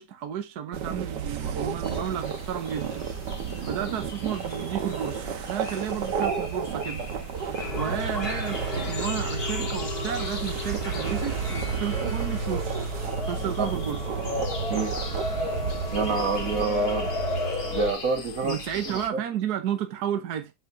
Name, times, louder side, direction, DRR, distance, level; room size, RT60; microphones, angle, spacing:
voice 1, 0.0-3.1 3.6-7.1 7.7-12.7 13.2-14.0 18.4-20.5, right 9 dB, 70° right, 1.4 m, -32 dB
sound 1, 0.7-16.7, right 7 dB, 85° right, 1.8 m, -33 dB
sound 2, 1.8-19.1, left 3 dB, 35° left, 1.4 m, -41 dB
sound 3, 7.6-17.9, equal, 60° left, 4.4 m, -31 dB
voice 2, 15.9-17.1 17.7-18.6 18.9-19.2, right 4 dB, 55° right, 2.0 m, -27 dB
8.6 x 7.1 x 2.6 m
omnidirectional pair, 1.8 m